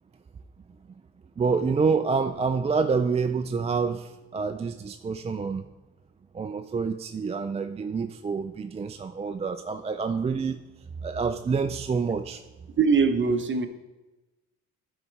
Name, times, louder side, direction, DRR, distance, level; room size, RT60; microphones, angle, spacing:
voice 1, 1.4-5.6 6.3-10.6 11.0-12.4, right 5 dB, 20° right, 7 dB, 0.3 m, -27 dB
voice 2, 12.8-13.7, right 5 dB, 40° right, 8 dB, 0.8 m, -22 dB
9.9 x 4.1 x 4.6 m, 1.1 s
cardioid pair, 90°, 30 cm